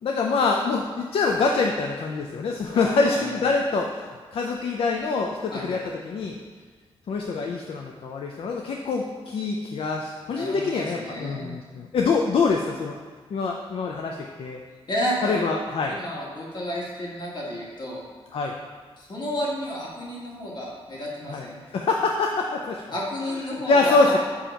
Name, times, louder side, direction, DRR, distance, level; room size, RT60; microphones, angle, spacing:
voice 1, 0.0-6.3 7.1-12.9 13.3-14.6 15.2-16.0 18.3-18.5 21.3-21.4 21.7-22.8 23.5-24.2, left 4 dB, 65° left, 1 dB, 0.4 m, -25 dB
voice 2, 2.7-3.3 5.5-5.8 10.3-11.5 14.9-15.5 15.9-18.0 19.0-21.6 22.9-24.2, equal, 45° left, -4 dB, 1.4 m, -31 dB
7.0 x 2.9 x 5.0 m, 1.5 s
wide cardioid pair, 145°, 10 cm